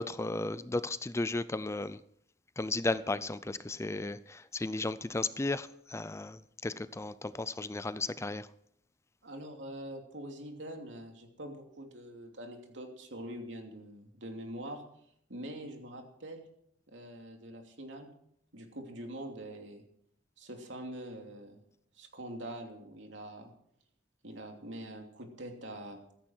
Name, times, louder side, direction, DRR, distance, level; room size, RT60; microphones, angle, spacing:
voice 1, 0.0-2.0 2.6-8.5, left 2 dB, 15° left, 0.4 m, -34 dB
voice 2, 9.2-14.8 15.3-16.4 16.9-18.1 18.5-19.8 20.4-21.6 21.9-23.5 24.2-26.0, right 1 dB, 80° right, 2.9 m, -44 dB
15.0 x 13.5 x 4.5 m
head